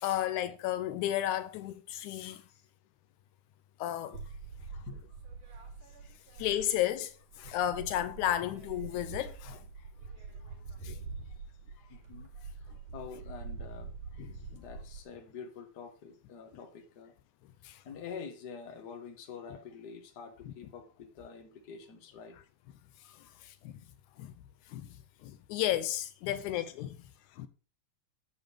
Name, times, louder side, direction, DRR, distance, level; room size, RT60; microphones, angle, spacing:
voice 1, 0.0-2.4 3.8-4.2 6.4-9.6 10.8-11.0 17.6-17.8 23.4-23.8 24.2-24.3 24.7-24.9 25.2-27.0 27.4-27.5, left 12 dB, 80° left, 2.0 m, -33 dB
sound 1, 4.1-7.0 7.3-15.0, right 4 dB, 90° right, 4.4 m, -45 dB
voice 2, 4.6-5.2 7.4-7.5 9.7-10.6 11.2-11.3 11.7-17.1 17.8-22.4 23.0-23.4, left 6 dB, 45° left, 1.5 m, -48 dB
8.7 x 7.6 x 3.3 m
omnidirectional pair, 3.5 m